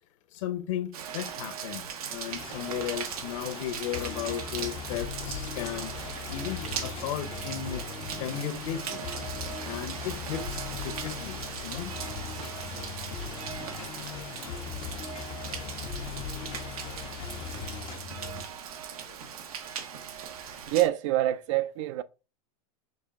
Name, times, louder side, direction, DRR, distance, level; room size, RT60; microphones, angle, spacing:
voice 1, 0.3-1.8 2.1-7.8 8.2-9.0 9.6-11.4 11.6-11.9, left 10 dB, 60° left, 1.0 m, -35 dB
Rain, 0.9-20.9, right 8 dB, 85° right, 0.9 m, -39 dB
sound 1, 2.3-18.0, left 9 dB, 25° left, 0.5 m, -46 dB
sound 2, 3.9-18.4, left 6 dB, 85° left, 1.1 m, -40 dB
voice 2, 20.7-22.0, right 14 dB, 60° right, 0.4 m, -26 dB
5.4 x 2.5 x 3.6 m
supercardioid pair, 135°, 18 cm